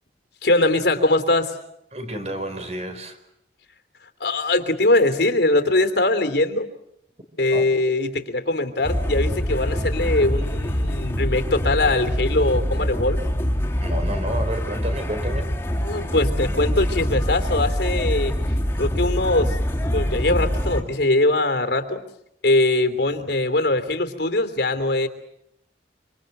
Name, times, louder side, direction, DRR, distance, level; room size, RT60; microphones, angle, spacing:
voice 1, 0.4-1.5 4.2-6.7 7.4-13.2 15.8-18.3 18.8-19.6 19.9-22.0 22.4-25.1, left 2 dB, 70° left, 9 dB, 3.0 m, -21 dB
voice 2, 1.9-3.2 7.5-7.7 13.8-15.4, right 1 dB, 35° right, 8 dB, 4.4 m, -30 dB
sound 1, 8.8-20.8, equal, 15° left, 3.3 m, -24 dB
26.0 x 26.0 x 7.9 m, 0.79 s
head